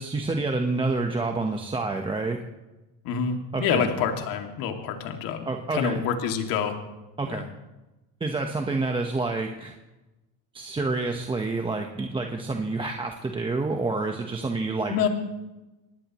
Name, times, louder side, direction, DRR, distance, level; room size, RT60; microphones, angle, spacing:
voice 1, 0.0-2.4 3.5-3.9 5.5-6.0 7.2-7.5 8.2-9.7 10.5-15.1, right 3 dB, 15° right, 3 dB, 1.1 m, -28 dB
voice 2, 3.0-6.8 7.2-7.4 14.9-15.1, left 7 dB, 60° left, 4 dB, 2.5 m, -27 dB
24.0 x 19.0 x 3.1 m, 1.1 s
cardioid pair, 135°, 38 cm